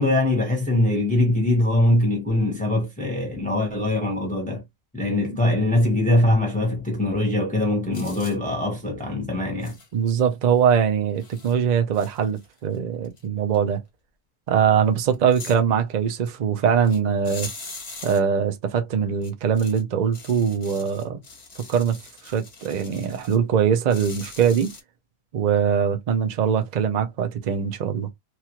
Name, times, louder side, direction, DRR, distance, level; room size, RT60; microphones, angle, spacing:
voice 1, 0.0-4.6 4.9-9.8, left 1 dB, 5° left, 0.7 m, -22 dB
sound 1, 7.9-8.4 9.6-9.9 10.6-10.7 11.2-11.5 11.9-12.8 13.0-13.2 13.5-13.6 15.0-15.6 16.8-17.0 17.2-18.2 19.2-19.8 20.1-23.4 23.9-24.8, left 3 dB, 35° left, 0.8 m, -41 dB
voice 2, 9.9-13.8 14.5-17.5 18.0-21.2 21.7-22.0 22.2-24.7 25.3-28.1, right 7 dB, 70° right, 0.4 m, -22 dB
2.9 x 2.4 x 2.9 m
omnidirectional pair, 1.5 m